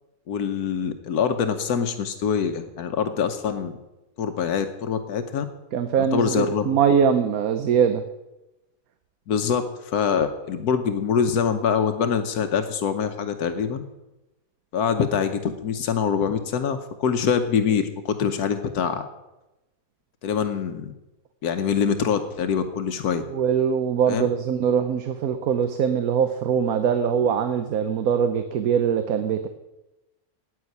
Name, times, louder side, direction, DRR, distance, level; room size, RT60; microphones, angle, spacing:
voice 1, 0.3-3.7 4.2-5.4 6.0-6.7 9.3-13.8 14.7-19.0 20.2-20.9 21.4-23.2 24.1-24.3, left 7 dB, 85° left, 8 dB, 1.4 m, -24 dB
voice 2, 5.7-8.0 23.2-29.5, right 7 dB, 70° right, 8 dB, 1.2 m, -22 dB
9.5 x 8.9 x 9.5 m, 0.99 s
omnidirectional pair, 1.6 m